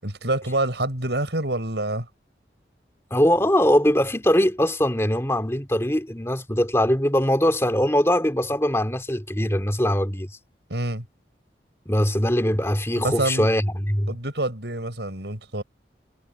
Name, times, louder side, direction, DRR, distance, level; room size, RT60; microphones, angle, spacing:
voice 1, 0.0-2.1 10.7-11.1 13.0-13.5 14.1-15.6, right 2 dB, 75° right, 5.6 m, -27 dB
voice 2, 3.1-10.3 11.9-14.1, equal, 15° left, 2.5 m, -21 dB
head